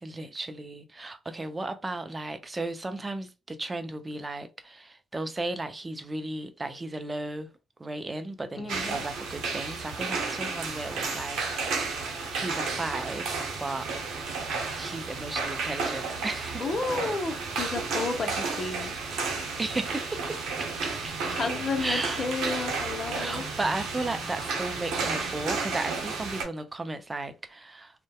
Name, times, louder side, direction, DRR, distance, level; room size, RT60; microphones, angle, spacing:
voice 1, 0.0-7.5 7.8-11.8 12.3-13.9 14.7-17.0 19.6-21.4 21.8-22.3 23.1-28.0, right 2 dB, 25° right, 0.4 m, -35 dB
voice 2, 8.6-9.0 16.6-18.9 21.3-23.5, left 3 dB, 45° left, 0.7 m, -32 dB
sound 1, 8.7-26.4, right 4 dB, 70° right, 0.7 m, -32 dB
2.6 x 2.1 x 2.2 m
hypercardioid pair, 50°, 0 cm